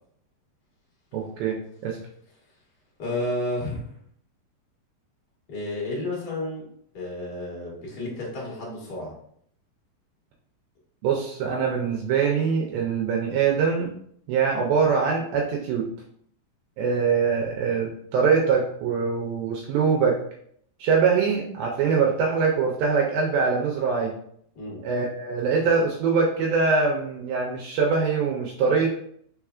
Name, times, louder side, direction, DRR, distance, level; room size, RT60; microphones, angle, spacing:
voice 1, 1.1-1.6 1.8-2.0 11.0-13.9 14.3-15.9 16.8-20.2 20.8-24.1 24.8-28.9, right 5 dB, 85° right, -1 dB, 2.3 m, -23 dB
voice 2, 3.0-3.8 5.5-6.6 6.9-9.2 24.5-24.8, left 1 dB, 90° left, -4 dB, 0.8 m, -31 dB
4.5 x 4.2 x 2.4 m, 0.66 s
omnidirectional pair, 4.1 m